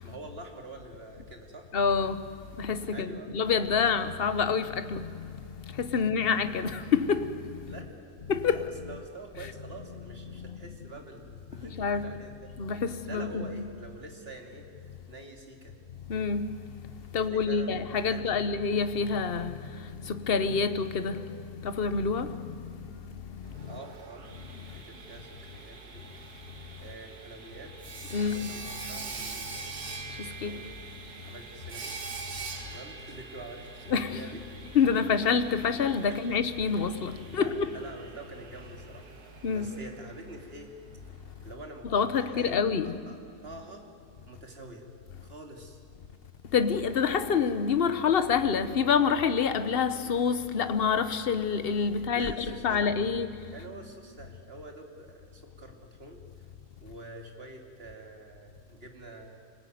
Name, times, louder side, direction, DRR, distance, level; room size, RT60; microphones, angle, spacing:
voice 1, 0.0-1.7 2.9-3.5 7.7-7.9 8.5-12.5 13.1-14.7 15.1-15.7 17.3-18.2 23.7-24.3 24.7-26.1 26.8-27.7 28.1-29.8 30.4-30.7 31.3-31.9 32.6-34.4 36.0-36.2 37.2-39.1 39.5-40.7 41.4-42.6 42.8-43.2 43.4-43.8 44.3-44.9 45.2-45.8 51.9-53.1 53.5-56.2 56.8-59.4, right 2 dB, 40° right, 2.9 m, -46 dB
voice 2, 1.7-2.2 2.6-5.1 5.8-7.3 8.3-8.7 11.7-12.1 12.6-13.7 16.1-16.5 17.1-19.6 20.1-22.5 23.6-23.7 28.1-28.6 30.4-30.6 33.9-34.2 34.7-37.7 39.4-39.7 41.9-43.0 46.5-53.3, left 6 dB, 40° left, 1.1 m, -27 dB
Sawing, 23.4-41.3, right 4 dB, 75° right, 2.5 m, -44 dB
25.0 x 20.0 x 9.4 m
omnidirectional pair, 1.7 m